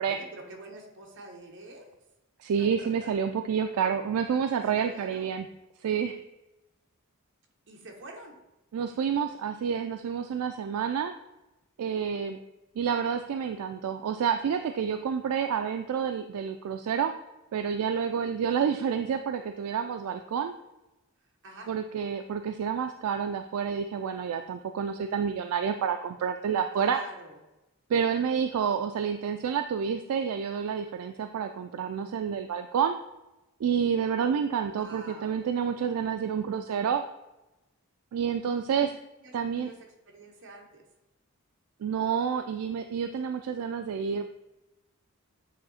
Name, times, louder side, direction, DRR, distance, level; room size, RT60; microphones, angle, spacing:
voice 1, 0.0-1.9 2.6-3.1 4.7-5.3 7.7-8.4 18.5-18.7 21.4-21.7 26.7-27.4 34.7-35.5 39.2-39.8 40.1-40.8, right 2 dB, 55° right, 1 dB, 1.1 m, -47 dB
voice 2, 2.4-5.5 5.8-6.2 8.7-11.1 11.8-12.4 12.8-17.1 17.5-20.5 21.7-27.0 27.9-33.0 33.6-37.0 38.1-38.9 39.3-39.7 41.8-44.3, right 7 dB, 75° right, 7 dB, 0.3 m, -29 dB
8.3 x 2.8 x 4.1 m, 0.98 s
head